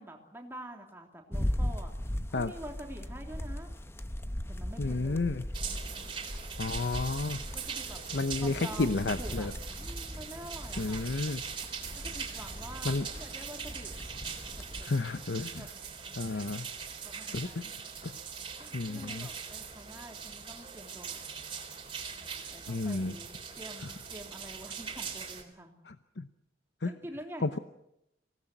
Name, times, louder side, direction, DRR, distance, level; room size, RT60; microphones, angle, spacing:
voice 1, 0.0-1.9 2.3-3.7 4.5-5.3 7.5-8.0 8.4-8.9 9.2-9.5 9.8-11.1 11.9-13.9 14.6-14.9 15.6-15.8 16.2-16.5 17.0-17.8 18.6-21.3 22.5-25.7 26.8-27.6, right 1 dB, 15° right, 2 dB, 3.2 m, -47 dB
sound 1, 1.3-14.8, equal, 15° left, 0.9 m, -39 dB
voice 2, 4.8-5.5 6.6-7.4 8.1-9.5 10.8-11.4 12.8-13.1 14.8-15.7 16.2-16.7 17.3-17.6 18.0-18.1 18.7-19.3 22.7-23.2 25.9-26.3 26.8-26.9 27.4-27.6, left 3 dB, 75° left, 10 dB, 0.8 m, -31 dB
sound 2, 5.5-25.4, right 6 dB, 30° right, 3.8 m, -41 dB
25.0 x 17.5 x 7.9 m, 0.84 s
head